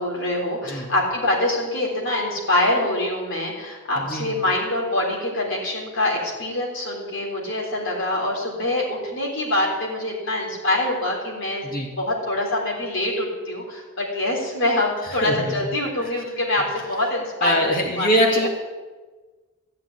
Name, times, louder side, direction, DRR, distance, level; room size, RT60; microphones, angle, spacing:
voice 1, 0.0-11.7 12.0-18.5, left 1 dB, 60° left, -2 dB, 3.8 m, -25 dB
voice 2, 4.0-4.3 11.6-11.9 15.2-15.5 16.0-16.1 17.4-18.5, equal, 45° left, 1 dB, 2.3 m, -23 dB
14.0 x 5.7 x 9.8 m, 1.3 s
head